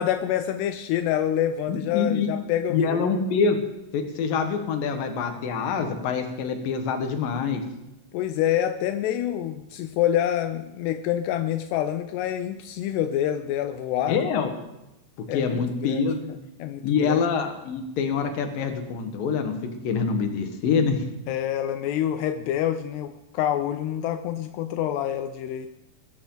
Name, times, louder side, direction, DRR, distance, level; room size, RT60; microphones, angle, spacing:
voice 1, 0.0-3.1 8.1-14.3 15.3-17.2 21.3-25.8, left 11 dB, 85° left, 9 dB, 2.8 m, -27 dB
voice 2, 1.7-2.3 2.7-3.6 3.9-7.6 14.1-14.5 15.3-16.2 16.8-19.6 19.8-21.1, left 5 dB, 65° left, 6 dB, 3.0 m, -25 dB
20.5 x 14.0 x 3.9 m, 0.92 s
omnidirectional pair, 4.8 m